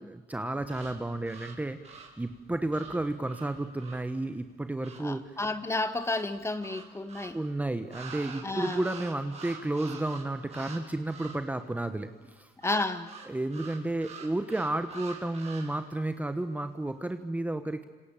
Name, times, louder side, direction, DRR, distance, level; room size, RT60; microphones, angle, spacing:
voice 1, 0.0-5.4 7.3-12.5 13.3-17.8, right 2 dB, 10° right, 9 dB, 1.3 m, -32 dB
sound 1, 0.6-5.2 6.0-7.4 7.9-10.8 11.1-11.5 12.6-15.9, right 5 dB, 40° right, 5.3 m, -46 dB
voice 2, 5.0-7.4 8.4-8.8 12.6-13.1, left 2 dB, 15° left, 11 dB, 1.8 m, -31 dB
29.5 x 26.5 x 7.5 m, 1.3 s
cardioid pair, 110°, 17 cm